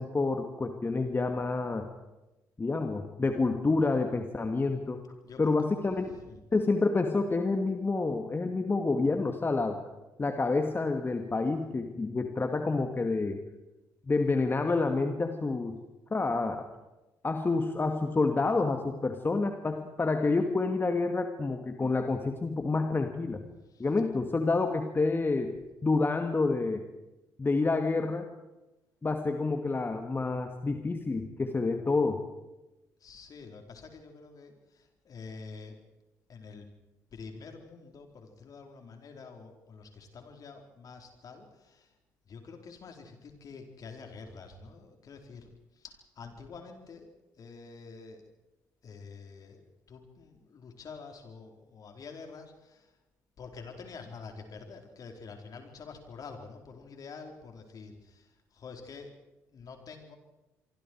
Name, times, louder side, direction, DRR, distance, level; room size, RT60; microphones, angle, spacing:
voice 1, 0.0-1.9 2.6-5.0 5.4-6.0 6.5-9.8 10.2-13.4 14.1-15.8 16.1-16.6 17.2-23.4 23.8-25.5 25.8-26.8 27.4-28.3 29.0-32.2, left 3 dB, 25° left, 5 dB, 2.3 m, -28 dB
voice 2, 5.2-5.7 6.0-6.4 23.7-23.9 33.0-35.8 36.3-36.7 37.1-41.9 42.3-47.1 47.4-48.3 48.8-52.9 53.4-59.1 59.5-60.2, left 4 dB, 50° left, 4 dB, 4.5 m, -47 dB
27.0 x 24.0 x 4.8 m, 1.0 s
hypercardioid pair, 55°, 8 cm